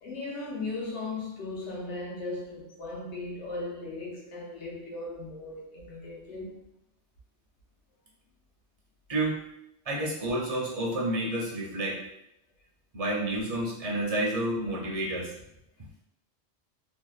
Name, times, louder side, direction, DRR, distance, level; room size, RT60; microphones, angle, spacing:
voice 1, 0.0-6.6, left 2 dB, 85° left, 1.0 m, -37 dB
voice 2, 9.9-12.0 12.9-15.3, right 1 dB, 45° right, 0.5 m, -29 dB
2.7 x 2.0 x 2.3 m
omnidirectional pair, 1.1 m